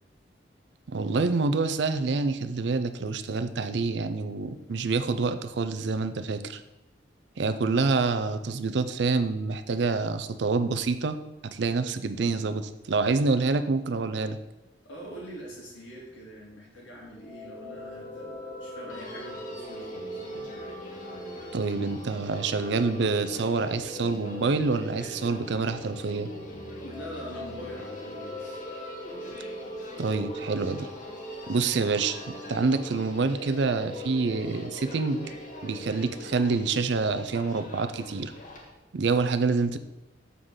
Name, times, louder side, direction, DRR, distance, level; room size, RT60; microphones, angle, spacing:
voice 1, 0.9-6.6 7.4-11.2 11.4-14.4 21.5-26.3 30.0-30.9 31.5-35.2 35.6-38.3 38.9-39.8, right 4 dB, 70° right, 10 dB, 0.5 m, -27 dB
voice 2, 14.8-20.2 26.8-28.6, equal, 85° left, -3 dB, 2.3 m, -43 dB
sound 1, 17.1-36.4, equal, 20° left, 1.2 m, -41 dB
Human voice, 18.9-38.7, left 1 dB, 45° left, 1.3 m, -45 dB
6.9 x 3.8 x 6.2 m, 0.99 s
head